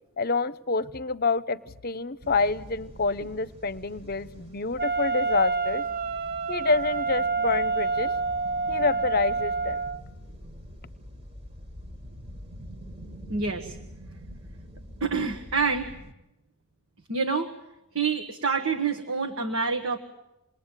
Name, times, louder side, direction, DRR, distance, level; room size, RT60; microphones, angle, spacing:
voice 1, 0.2-5.8 6.5-8.1 8.7-9.8, left 4 dB, 45° left, 16 dB, 0.9 m, -27 dB
sound 1, 2.2-16.1, equal, 30° right, 2.0 m, -45 dB
Wind instrument woodwind instrument, 4.8-10.0, right 4 dB, 45° right, 1.1 m, -28 dB
voice 2, 13.3-13.8 15.0-15.9 17.1-17.5 17.9-20.0, right 4 dB, 65° right, 5 dB, 1.6 m, -27 dB
28.0 x 21.0 x 9.0 m, 0.93 s
head